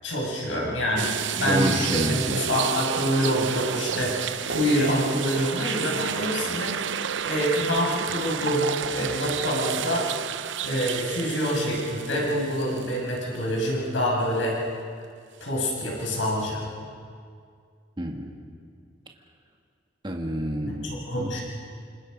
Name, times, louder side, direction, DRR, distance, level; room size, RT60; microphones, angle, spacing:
voice 1, 0.0-10.1 10.6-14.6 15.4-16.7 20.6-21.4, equal, 85° left, -2 dB, 6.5 m, -26 dB
sound 1, 1.0-13.2 13.6-13.7 16.0-16.2, right 8 dB, 75° right, 0.7 m, -31 dB
voice 2, 1.4-2.5 18.0-18.3 20.0-20.9 21.2-21.4, right 1 dB, 25° right, 1 dB, 1.9 m, -28 dB
28.5 x 27.0 x 5.4 m, 2.2 s
head